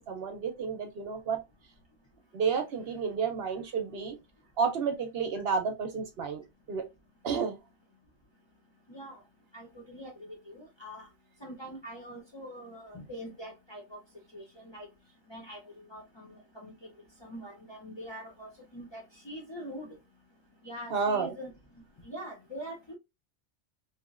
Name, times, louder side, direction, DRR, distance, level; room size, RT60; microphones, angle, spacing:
voice 1, 0.0-1.4 2.3-4.2 4.6-6.4 6.7-6.8 7.2-7.6 20.9-21.3, right 5 dB, 65° right, 0.8 m, -31 dB
voice 2, 8.9-9.2 9.5-11.1 11.4-14.0 14.3-14.9 15.3-16.9 17.2-20.0 20.6-21.5 22.0-22.9, equal, 30° left, 0.6 m, -44 dB
3.0 x 2.9 x 2.4 m
omnidirectional pair, 1.2 m